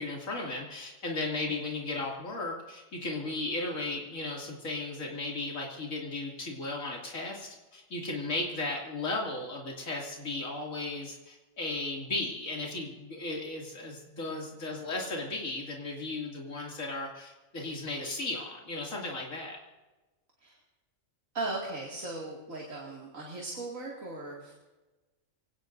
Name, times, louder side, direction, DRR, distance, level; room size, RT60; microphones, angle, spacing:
voice 1, 0.0-19.6, left 2 dB, 80° left, -2 dB, 3.0 m, -35 dB
voice 2, 21.3-24.5, right 2 dB, 75° right, -3 dB, 2.8 m, -38 dB
24.5 x 18.5 x 2.6 m, 1.1 s
omnidirectional pair, 1.4 m